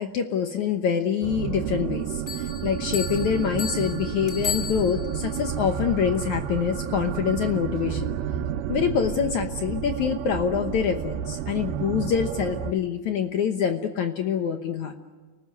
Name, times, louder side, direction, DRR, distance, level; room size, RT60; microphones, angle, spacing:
voice 1, 0.0-8.1 8.7-14.9, left 7 dB, 65° left, 6 dB, 2.1 m, -26 dB
sound 1, 1.2-12.7, right 9 dB, 75° right, 2.7 m, -31 dB
sound 2, 2.3-5.3, left 6 dB, 20° left, 2.8 m, -34 dB
29.5 x 19.0 x 9.5 m, 1.4 s
omnidirectional pair, 4.5 m